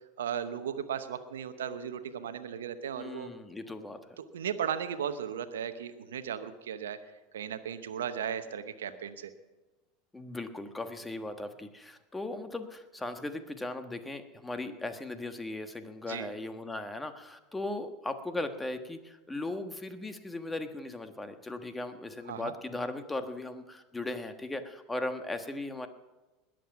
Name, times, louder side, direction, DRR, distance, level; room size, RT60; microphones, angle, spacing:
voice 1, 0.2-3.3 4.2-7.0 7.3-9.3 16.1-16.3 22.3-22.5, right 8 dB, 80° right, 10 dB, 0.9 m, -36 dB
voice 2, 3.0-4.0 10.1-25.9, left 2 dB, 10° left, 8 dB, 1.3 m, -38 dB
20.5 x 7.7 x 5.8 m, 1.1 s
hypercardioid pair, 85°, 0 cm